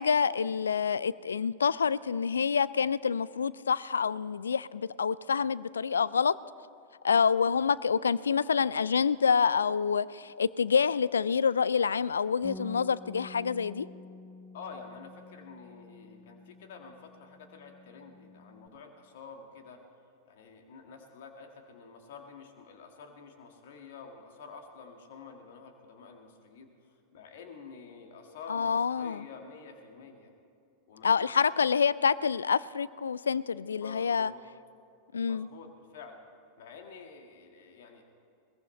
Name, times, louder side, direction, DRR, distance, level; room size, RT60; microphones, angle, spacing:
voice 1, 0.0-6.4 7.0-13.9 28.5-29.2 31.0-34.3 35.1-35.5, left 6 dB, 70° left, 20 dB, 0.3 m, -27 dB
Bass guitar, 12.4-18.7, left 1 dB, 5° right, 5.3 m, -49 dB
voice 2, 14.5-19.8 20.3-30.3 30.9-31.4 33.8-34.4 35.3-36.2 36.6-38.0, left 5 dB, 55° left, 4 dB, 2.0 m, -49 dB
21.5 x 20.0 x 3.3 m, 2.6 s
figure-of-eight pair, 90°, 0 cm